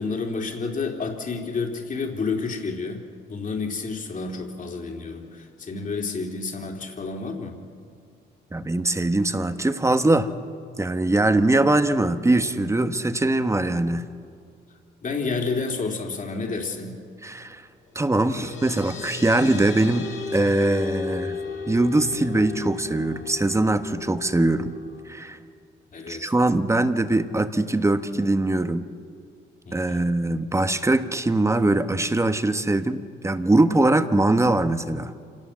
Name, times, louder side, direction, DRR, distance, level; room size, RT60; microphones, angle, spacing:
voice 1, 0.0-7.6 15.0-17.0 25.9-26.3 29.6-30.0, left 4 dB, 40° left, 2 dB, 3.4 m, -30 dB
voice 2, 8.5-10.3 10.8-14.0 17.2-17.6 17.9-21.4 21.7-24.7 25.1-25.4 26.1-28.8 29.7-35.1, right 2 dB, 15° right, 9 dB, 1.3 m, -22 dB
sound 1, 17.9-25.1, left 5 dB, 75° left, 4.5 m, -35 dB
26.5 x 18.5 x 7.5 m, 2.4 s
cardioid pair, 90°, 20 cm